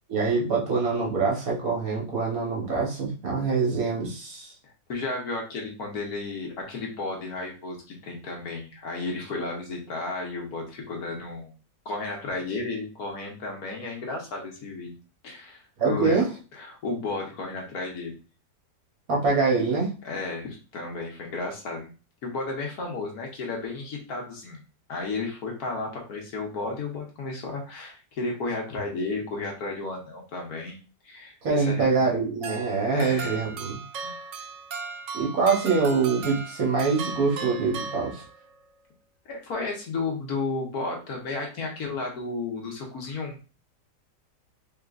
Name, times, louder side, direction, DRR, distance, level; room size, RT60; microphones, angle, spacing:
voice 1, 0.1-4.5 15.8-16.3 19.1-19.9 31.4-33.8 35.1-38.2, right 4 dB, 55° right, -3 dB, 1.5 m, -24 dB
voice 2, 4.6-11.5 11.8-14.9 15.2-16.2 16.6-18.2 20.0-21.9 22.2-24.6 24.9-32.1 32.9-33.4 33.9-34.1 39.3-43.4, left 3 dB, 65° left, 0 dB, 1.4 m, -33 dB
sound 1, 32.4-38.6, right 5 dB, 90° right, 0.6 m, -37 dB
3.8 x 3.6 x 2.4 m, 0.34 s
omnidirectional pair, 1.9 m